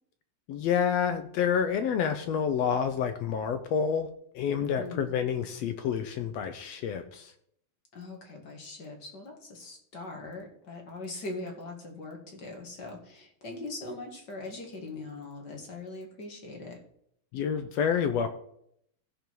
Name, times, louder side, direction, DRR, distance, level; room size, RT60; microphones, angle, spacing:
voice 1, 0.5-4.1 4.3-7.3 17.3-18.3, left 7 dB, 75° left, 8 dB, 1.6 m, -28 dB
voice 2, 4.8-5.1 7.9-16.8, left 2 dB, 40° left, 2 dB, 2.0 m, -41 dB
15.5 x 5.3 x 4.6 m, 0.69 s
omnidirectional pair, 3.5 m